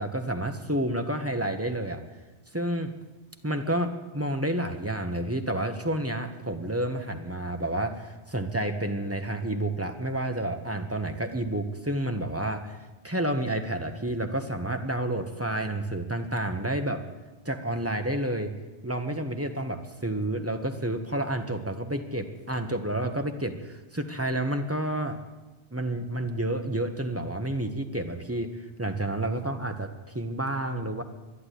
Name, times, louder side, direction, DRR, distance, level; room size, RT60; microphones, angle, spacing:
voice 1, 0.0-2.0 2.5-2.9 3.4-12.8 13.0-17.0 17.4-18.5 18.8-25.2 25.7-28.5 28.8-31.0, right 1 dB, 15° right, 5 dB, 1.0 m, -30 dB
12.0 x 11.0 x 10.0 m, 1.1 s
omnidirectional pair, 1.2 m